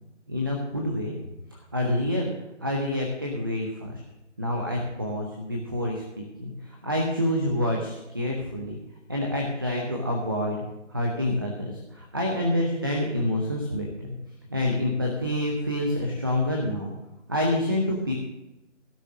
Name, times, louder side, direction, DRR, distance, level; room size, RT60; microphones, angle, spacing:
voice 1, 0.3-1.1 1.5-2.3 2.6-4.0 4.4-8.8 9.1-10.6 10.9-14.2 14.5-16.9 17.3-18.1, left 1 dB, 20° right, 0 dB, 0.7 m, -27 dB
16.0 x 6.6 x 6.1 m, 0.98 s
figure-of-eight pair, 160°, 37 cm